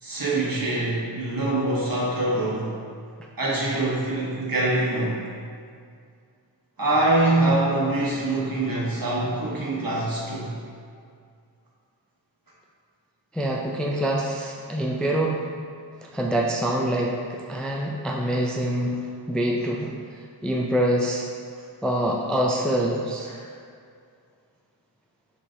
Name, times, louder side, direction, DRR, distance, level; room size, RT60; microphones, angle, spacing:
voice 1, 0.0-2.8 3.4-5.2 6.8-10.6 23.3-23.5, right 2 dB, 55° right, -5 dB, 1.2 m, -24 dB
voice 2, 13.3-15.4 16.0-19.9 20.4-21.2 21.8-23.3, right 1 dB, ahead, -1 dB, 0.3 m, -25 dB
6.1 x 3.1 x 2.6 m, 2.3 s
wide cardioid pair, 50°, 41 cm